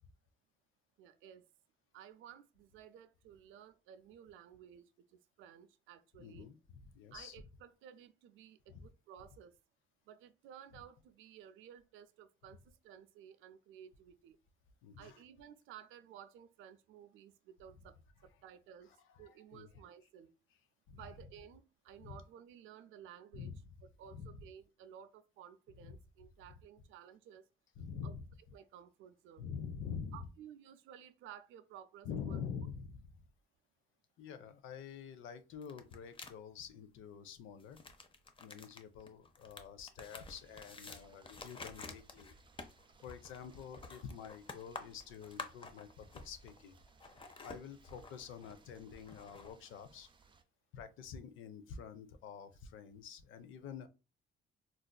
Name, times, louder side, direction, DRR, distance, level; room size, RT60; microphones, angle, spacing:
voice 1, 1.0-1.5 1.9-4.8 5.1-6.5 7.1-9.5 10.1-14.4 15.0-18.9 19.2-20.3 20.9-23.5 24.0-27.4 28.0-28.1 28.5-29.5 30.1-32.4, right 9 dB, 90° right, 0.4 m, -55 dB
voice 2, 6.2-7.4 8.7-8.9 14.8-15.2 18.9-19.7 20.9-21.0 22.0-22.2 23.3-23.6 24.1-24.4 25.8-25.9 27.8-28.3 29.4-30.3 32.0-33.2 34.2-37.8 38.4-42.4 43.0-46.8 47.4-50.1 50.7-53.9, left 7 dB, 80° left, 0.5 m, -47 dB
sound 1, 35.6-36.3 37.6-46.6 46.9-49.5, left 3 dB, 25° left, 0.5 m, -51 dB
sound 2, 40.3-50.4, right 5 dB, 25° right, 0.4 m, -66 dB
4.0 x 2.4 x 2.2 m
cardioid pair, 90°, 20 cm